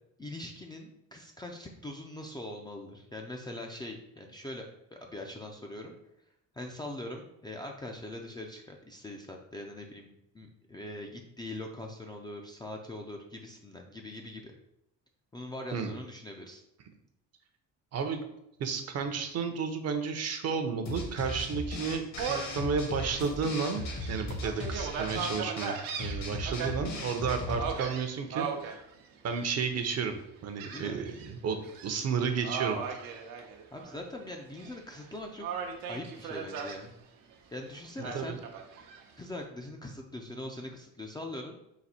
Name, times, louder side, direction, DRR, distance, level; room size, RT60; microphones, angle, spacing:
voice 1, 0.2-5.9 6.6-14.5 15.3-16.6 30.7-31.0 33.7-35.5 35.9-36.9 37.5-38.4 39.2-41.6, left 1 dB, 15° left, 1 dB, 0.4 m, -42 dB
voice 2, 18.6-23.8 24.1-28.9 29.2-30.1 30.4-33.1 38.1-38.4, right 5 dB, 50° right, 6 dB, 0.7 m, -32 dB
sound 1, 20.9-27.7, left 2 dB, 55° left, 1.0 m, -37 dB
Gull seagull, 22.2-22.6 23.1-23.2 23.7-26.7 27.6-28.7 29.3-29.7 30.6-31.3 31.6-31.9 32.4-34.0 34.3-35.0 35.4-36.8 38.0-39.0, right 6 dB, 80° right, 0.8 m, -37 dB
4.0 x 2.6 x 4.2 m, 0.83 s
cardioid pair, 125°, 33 cm